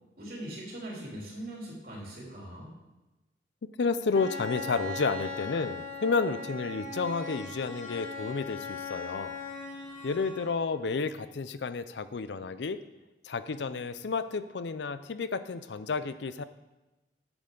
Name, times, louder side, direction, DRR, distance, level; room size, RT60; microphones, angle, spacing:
voice 1, 0.2-2.7, right 1 dB, 55° right, -4 dB, 3.5 m, -41 dB
voice 2, 3.8-9.4 10.0-12.8 13.2-16.4, left 4 dB, 70° left, 13 dB, 0.5 m, -31 dB
Bowed string instrument, 4.1-10.8, left 3 dB, 35° left, 3.6 m, -39 dB
11.0 x 8.6 x 3.9 m, 1.0 s
head